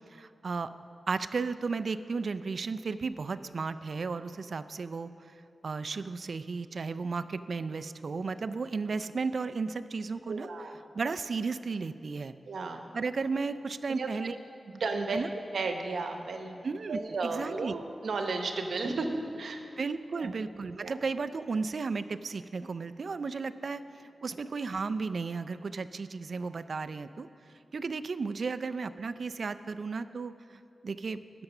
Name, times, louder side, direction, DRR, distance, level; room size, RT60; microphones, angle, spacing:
voice 1, 0.1-0.7 1.1-5.1 5.6-10.5 10.9-12.3 12.9-14.4 15.1-15.3 16.6-17.7 19.8-23.8 24.2-27.3 27.7-31.4, right 4 dB, 55° right, 13 dB, 0.3 m, -34 dB
voice 2, 10.3-10.8 12.5-12.8 14.0-14.1 14.7-15.2 15.5-16.6 16.9-19.6 20.1-20.3 20.8-21.0, right 3 dB, 80° right, 5 dB, 0.9 m, -33 dB
12.0 x 6.9 x 5.9 m, 2.9 s
wide cardioid pair, 125°, 0 cm